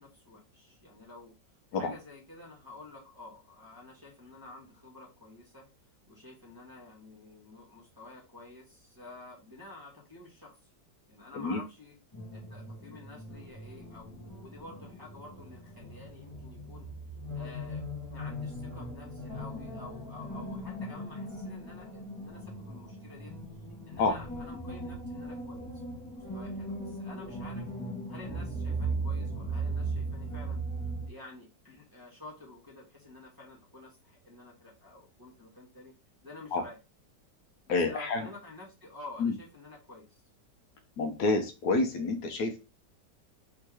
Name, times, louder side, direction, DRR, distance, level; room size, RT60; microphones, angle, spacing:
voice 1, 0.0-1.3 1.7-5.7 6.1-10.7 11.1-12.0 12.3-16.9 17.3-23.3 23.8-27.7 28.1-30.6 31.0-35.9 36.2-36.8 37.7-40.1, left 2 dB, 15° right, -5 dB, 1.1 m, -50 dB
sound 1, 12.1-31.1, right 2 dB, 15° left, 0.9 m, -38 dB
voice 2, 37.7-38.2 39.2-39.3 41.0-42.6, left 3 dB, 70° left, 5 dB, 1.2 m, -28 dB
3.6 x 2.9 x 4.6 m, 0.30 s
omnidirectional pair, 1.9 m